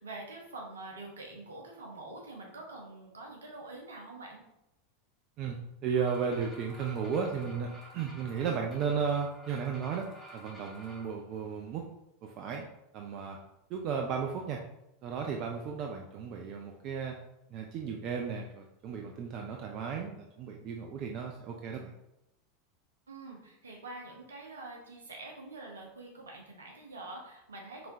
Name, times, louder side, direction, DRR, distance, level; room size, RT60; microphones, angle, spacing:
voice 1, 0.0-4.4 23.1-27.9, right 2 dB, 70° right, 0 dB, 1.0 m, -45 dB
voice 2, 5.4-10.1 10.3-11.8 12.2-12.7 12.9-13.4 13.7-14.6 15.0-17.1 17.5-21.9, right 6 dB, 40° right, 2 dB, 0.4 m, -34 dB
sound 1, 5.9-11.1, right 1 dB, 5° right, 1.6 m, -51 dB
4.8 x 3.6 x 2.6 m, 0.86 s
figure-of-eight pair, 85°, 0 cm